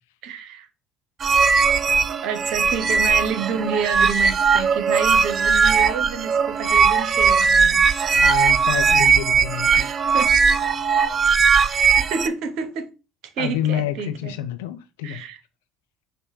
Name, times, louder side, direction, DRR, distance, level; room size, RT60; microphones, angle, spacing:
voice 1, 0.2-0.7 2.2-7.9 9.7-10.3 11.6-11.7 12.0-12.9 13.4-14.3 15.0-15.4, right 6 dB, 60° right, 0.7 m, -29 dB
sound 1, 1.2-12.3, right 5 dB, 40° right, 0.3 m, -19 dB
voice 2, 8.2-9.9 13.4-15.2, left 11 dB, 75° left, 0.5 m, -28 dB
5.2 x 2.1 x 4.6 m
hypercardioid pair, 60°, 0 cm